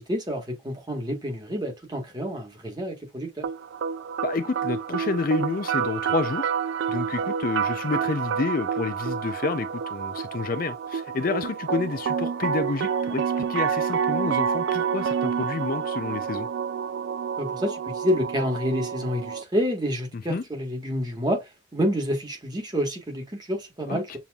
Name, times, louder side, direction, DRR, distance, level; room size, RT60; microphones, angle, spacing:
voice 1, 0.0-3.5 17.4-24.2, equal, 20° right, 1.4 m, -28 dB
sound 1, 3.4-19.4, right 7 dB, 65° right, 0.3 m, -28 dB
voice 2, 4.2-6.5 6.9-16.5 20.1-20.4 23.9-24.2, left 3 dB, 45° left, 0.4 m, -29 dB
6.9 x 2.9 x 2.4 m
head